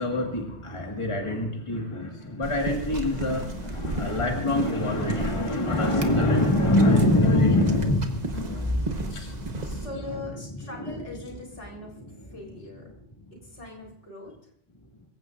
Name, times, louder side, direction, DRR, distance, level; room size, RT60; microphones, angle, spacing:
voice 1, 0.0-10.2 10.7-11.0 11.8-12.2, left 1 dB, 25° left, 1 dB, 1.8 m, -25 dB
sound 1, 2.4-9.9, right 2 dB, 35° right, 1.2 m, -35 dB
voice 2, 9.6-11.9 12.3-12.9 13.3-14.4, left 2 dB, 70° left, -1 dB, 4.2 m, -41 dB
23.5 x 15.5 x 2.5 m, 0.68 s
omnidirectional pair, 1.2 m